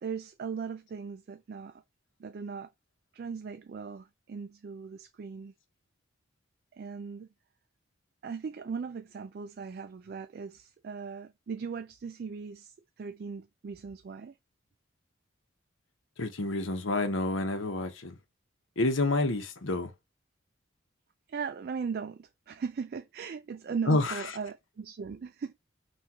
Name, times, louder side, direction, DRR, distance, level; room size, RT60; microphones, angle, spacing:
voice 1, 0.0-1.8 2.2-2.7 3.1-5.5 6.7-7.3 8.2-14.3 21.3-25.5, right 5 dB, 50° right, 0.3 m, -38 dB
voice 2, 16.2-18.2 18.8-19.9 23.9-24.1, left 2 dB, 75° left, 0.9 m, -28 dB
5.9 x 2.5 x 2.8 m
head